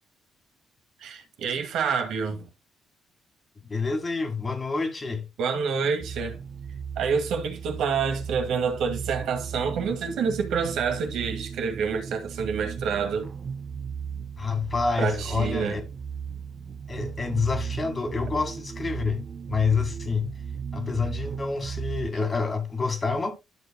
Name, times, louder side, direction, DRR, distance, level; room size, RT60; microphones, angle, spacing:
voice 1, 1.0-2.5 5.4-6.4 7.0-13.3 15.0-15.8, right 6 dB, 80° right, 1.9 m, -27 dB
voice 2, 3.6-5.3 14.4-15.8 16.9-20.3 20.7-23.3, left 4 dB, 30° left, 1.9 m, -28 dB
sound 1, 6.0-22.1, right 6 dB, 50° right, 1.1 m, -36 dB
11.5 x 6.1 x 2.2 m
cardioid pair, 90°, 0 cm